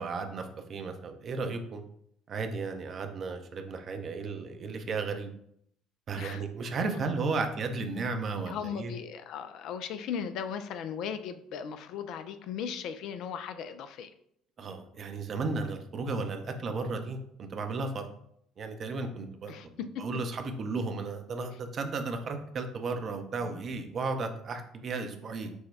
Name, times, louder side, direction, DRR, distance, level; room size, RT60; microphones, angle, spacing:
voice 1, 0.0-1.8 2.3-5.3 6.1-8.9 14.6-18.1 18.6-19.7 20.0-25.5, right 3 dB, 45° right, 6 dB, 0.6 m, -34 dB
voice 2, 8.5-14.1 19.5-20.0 23.4-23.6, left 7 dB, 55° left, 10 dB, 0.3 m, -37 dB
6.0 x 2.2 x 3.3 m, 0.71 s
figure-of-eight pair, 55°, 0 cm